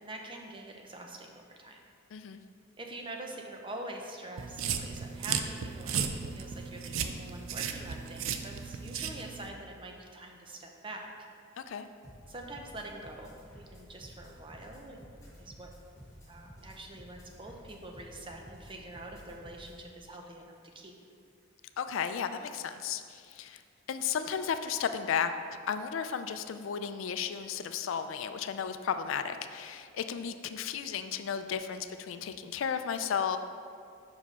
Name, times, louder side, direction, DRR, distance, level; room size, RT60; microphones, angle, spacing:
voice 1, 0.0-1.8 2.8-6.0 6.3-11.1 12.3-15.0 15.4-15.7 16.3-20.4 20.7-20.9, right 1 dB, 25° right, 1 dB, 0.7 m, -45 dB
sound 1, 4.4-9.5, right 7 dB, 80° right, 0.4 m, -35 dB
voice 2, 11.6-11.9 21.8-23.6 23.9-25.3 25.7-33.4, left 7 dB, 70° left, 9 dB, 0.4 m, -34 dB
sound 2, 12.0-19.8, equal, 15° left, 1.5 m, -53 dB
5.6 x 5.0 x 5.4 m, 2.3 s
head